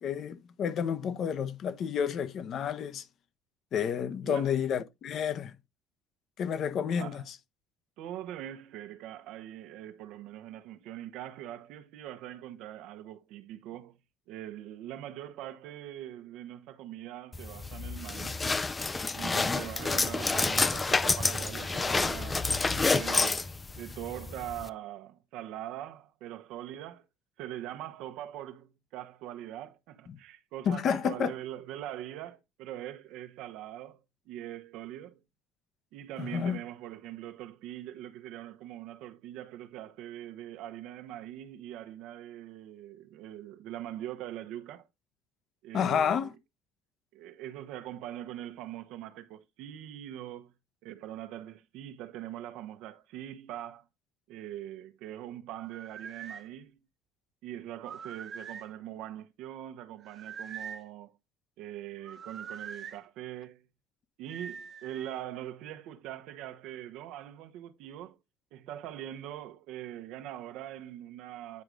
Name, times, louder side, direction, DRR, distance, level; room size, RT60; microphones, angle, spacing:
voice 1, 0.0-3.0 3.7-5.5 6.4-7.2 30.7-31.3 36.2-36.6 45.7-46.3, left 7 dB, 40° left, 0.8 m, -30 dB
voice 2, 4.2-4.6 7.0-7.2 8.0-14.0 14.3-18.4 19.1-23.5 23.8-27.1 27.4-35.2 35.9-44.9 45.6-46.3 47.1-50.5 50.8-53.9 54.3-56.8 57.4-61.2 61.6-63.7 64.2-68.2 68.5-71.6, right 12 dB, 65° right, 0.9 m, -42 dB
sound 1, 17.3-24.7, left 3 dB, 15° left, 0.4 m, -29 dB
sound 2, 55.6-56.4 57.8-58.7 60.0-60.9 62.0-63.0 64.3-65.2, right 7 dB, 30° right, 1.0 m, -43 dB
9.6 x 4.7 x 3.8 m
cardioid pair, 155°, 0 cm